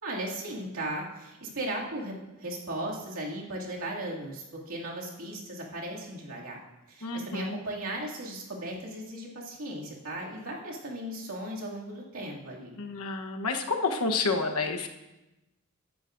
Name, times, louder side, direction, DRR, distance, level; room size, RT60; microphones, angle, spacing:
voice 1, 0.0-6.6 6.9-12.7, right 1 dB, 75° right, -3 dB, 2.4 m, -37 dB
voice 2, 7.0-7.6 12.8-14.9, left 3 dB, 90° left, 5 dB, 1.1 m, -29 dB
15.0 x 11.5 x 2.6 m, 1.0 s
head